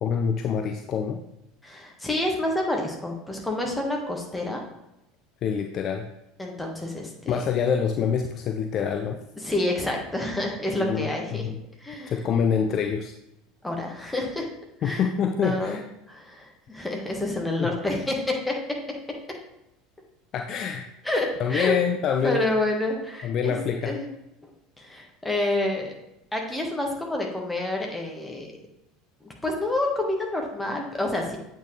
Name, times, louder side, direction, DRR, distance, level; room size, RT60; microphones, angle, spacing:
voice 1, 0.0-1.2 5.4-6.1 7.3-9.2 10.7-11.6 12.1-13.1 14.8-15.8 17.6-17.7 20.3-20.8 21.4-22.5 23.2-23.9, left 7 dB, 40° left, 4 dB, 0.5 m, -26 dB
voice 2, 1.6-4.6 6.4-7.4 9.4-11.4 11.8-12.2 13.6-14.4 14.8-15.1 15.4-15.8 16.1-18.8 21.0-21.7 22.2-24.1 24.8-25.9 26.3-28.5 29.2-31.4, left 1 dB, 10° left, 0 dB, 1.5 m, -28 dB
8.0 x 4.3 x 3.3 m, 0.86 s
figure-of-eight pair, 70°, 0 cm